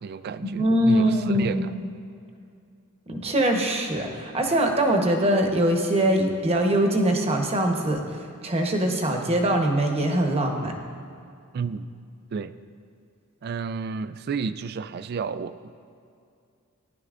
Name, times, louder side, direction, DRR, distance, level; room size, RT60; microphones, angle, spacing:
voice 1, 0.0-1.7 11.5-11.9 12.3-12.5 13.4-15.8, right 5 dB, 45° right, 14 dB, 0.3 m, -31 dB
voice 2, 0.5-1.9 3.1-10.7, right 1 dB, 30° right, 3 dB, 0.9 m, -23 dB
16.0 x 10.5 x 2.5 m, 2.4 s
head